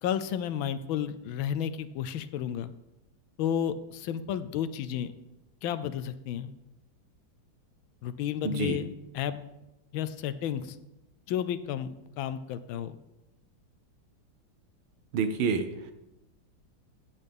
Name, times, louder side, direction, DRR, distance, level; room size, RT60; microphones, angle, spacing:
voice 1, 0.0-2.7 3.4-5.1 5.6-6.5 8.0-9.4 9.9-10.8 11.3-13.0, left 9 dB, 80° left, 13 dB, 1.4 m, -32 dB
voice 2, 8.4-8.8 15.1-15.9, right 5 dB, 75° right, 8 dB, 1.7 m, -28 dB
14.5 x 8.2 x 3.5 m, 0.93 s
omnidirectional pair, 2.3 m